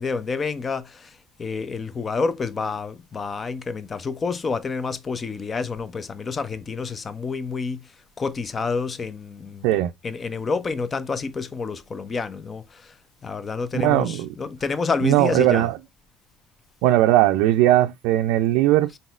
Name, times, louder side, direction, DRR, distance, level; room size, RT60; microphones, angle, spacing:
voice 1, 0.0-7.9 8.2-9.7 10.0-12.9 13.2-15.7, left 4 dB, 30° left, 0.6 m, -28 dB
voice 2, 13.7-14.3 15.0-15.8 16.8-19.0, right 14 dB, 75° right, 0.4 m, -19 dB
4.1 x 3.9 x 2.4 m
supercardioid pair, 80°, 0 cm